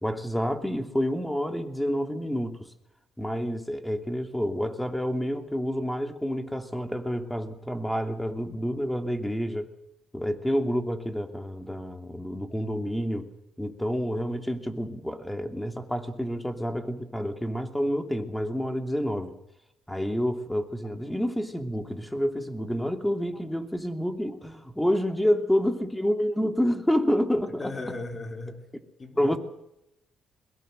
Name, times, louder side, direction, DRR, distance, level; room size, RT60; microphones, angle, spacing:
voice 1, 0.0-2.7 3.2-9.7 10.1-13.3 13.6-19.3 19.9-27.6 29.2-29.4, equal, 5° left, 6 dB, 2.8 m, -28 dB
voice 2, 27.6-28.7 29.0-29.4, left 2 dB, 30° left, 5 dB, 3.7 m, -37 dB
22.0 x 21.5 x 6.6 m, 0.84 s
cardioid pair, 90°, 0 cm